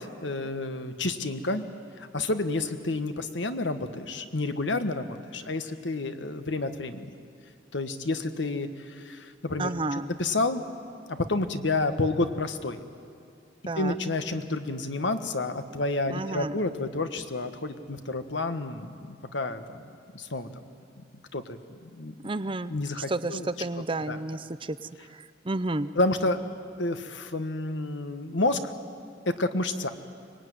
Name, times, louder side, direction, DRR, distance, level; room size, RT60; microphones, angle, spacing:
voice 1, 0.0-1.6 2.0-7.1 7.7-10.6 11.1-12.8 13.8-19.8 20.1-20.5 21.0-21.1 21.3-21.6 21.8-22.3 22.7-23.5 24.1-24.2 26.0-26.4 26.8-28.7 29.2-29.9, left 2 dB, 90° left, 8 dB, 1.4 m, -30 dB
voice 2, 9.6-10.1 13.7-14.0 16.1-16.6 22.2-22.7 23.1-25.9, right 2 dB, 30° right, 12 dB, 0.7 m, -31 dB
24.5 x 21.0 x 9.6 m, 2.5 s
head